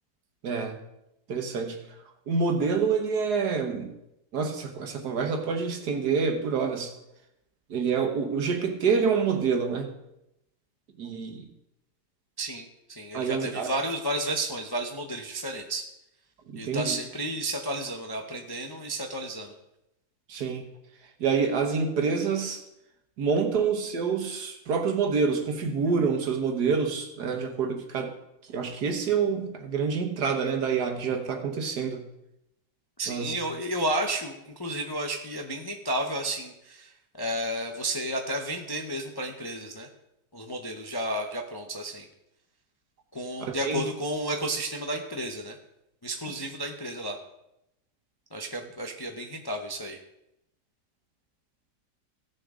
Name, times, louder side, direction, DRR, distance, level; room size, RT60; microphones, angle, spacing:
voice 1, 0.4-0.8 1.3-1.8 2.3-3.9 4.3-6.9 7.7-9.9 11.0-11.5 13.1-13.7 16.5-17.0 20.3-20.7 21.2-22.6 23.2-28.1 28.5-32.0 33.1-33.3 43.4-43.8, right 5 dB, 70° right, 4 dB, 1.7 m, -27 dB
voice 2, 12.4-15.9 16.5-19.5 33.0-39.9 40.3-42.1 43.1-45.6 46.0-47.2 48.3-50.0, right 1 dB, 25° left, 2 dB, 0.5 m, -32 dB
16.5 x 6.6 x 3.7 m, 0.86 s
omnidirectional pair, 1.8 m